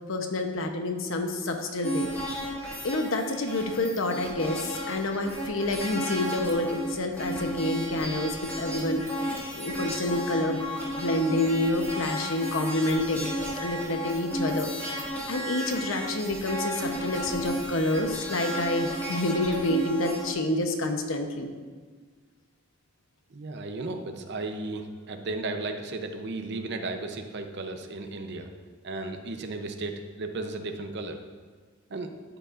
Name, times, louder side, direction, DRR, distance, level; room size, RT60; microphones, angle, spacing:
voice 1, 0.1-2.1 2.8-9.0 9.5-10.6 11.0-13.3 13.6-14.7 15.3-21.5, left 1 dB, 65° left, 4 dB, 0.9 m, -28 dB
sound 1, 1.8-20.3, equal, 10° left, 2.0 m, -34 dB
voice 2, 23.3-28.5 28.8-31.2 31.9-32.1, right 2 dB, 55° right, 6 dB, 0.7 m, -35 dB
12.5 x 7.9 x 2.5 m, 1.5 s
head